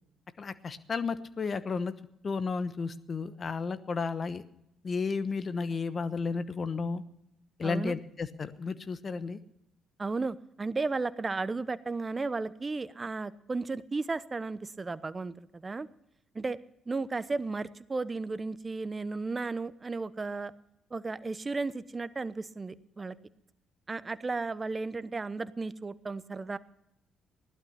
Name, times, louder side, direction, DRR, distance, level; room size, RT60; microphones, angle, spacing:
voice 1, 0.4-1.9 2.2-4.4 4.8-7.0 7.6-9.4, left 4 dB, 45° left, 13 dB, 1.1 m, -33 dB
voice 2, 7.6-8.0 10.0-15.9 16.3-16.6 16.9-20.5 20.9-23.2 23.9-26.6, right 3 dB, 30° right, 16 dB, 0.8 m, -34 dB
16.5 x 12.0 x 5.8 m, 0.82 s
hypercardioid pair, 50°, 0 cm